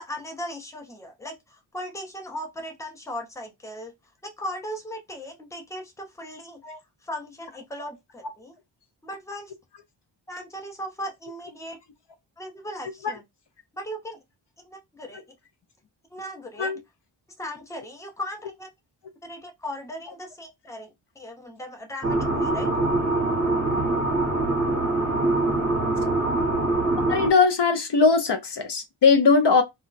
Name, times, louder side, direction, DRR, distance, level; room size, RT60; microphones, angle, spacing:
voice 1, 0.0-3.9 4.2-6.6 7.0-8.5 9.0-9.5 10.3-11.8 12.4-13.2 13.7-14.2 14.7-15.3 16.1-16.7 17.4-18.7 19.2-22.7, equal, 5° left, 0.6 m, -37 dB
sound 1, 22.0-27.3, right 2 dB, 30° right, 0.8 m, -24 dB
voice 2, 27.1-29.6, left 4 dB, 60° left, 0.6 m, -20 dB
2.3 x 2.1 x 3.9 m
wide cardioid pair, 115°, 48 cm